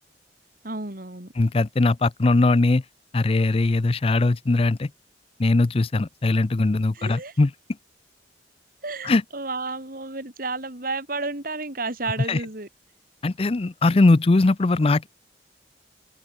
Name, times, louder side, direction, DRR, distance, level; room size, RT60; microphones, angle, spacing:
voice 1, 0.6-1.3 6.9-7.3 8.8-12.7, right 3 dB, 55° right, 3.4 m, -32 dB
voice 2, 1.4-2.8 3.1-4.9 5.4-7.5 9.0-9.2 12.3-12.4 13.2-15.1, left 2 dB, 35° left, 0.5 m, -20 dB
open air
head